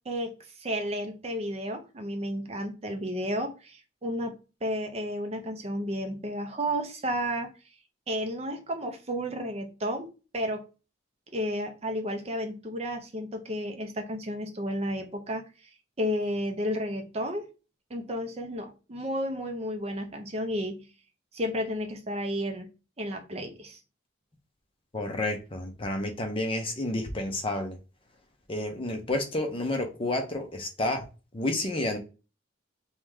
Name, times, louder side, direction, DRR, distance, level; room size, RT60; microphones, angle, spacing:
voice 1, 0.6-4.3 4.6-7.5 8.1-10.6 11.3-15.4 16.0-17.5 17.9-20.8 21.3-22.7 23.0-23.8, equal, 35° right, 0.7 m, -32 dB
voice 2, 24.9-27.8 28.5-31.0 31.3-32.0, left 2 dB, 30° left, 0.7 m, -30 dB
3.1 x 3.0 x 3.6 m
head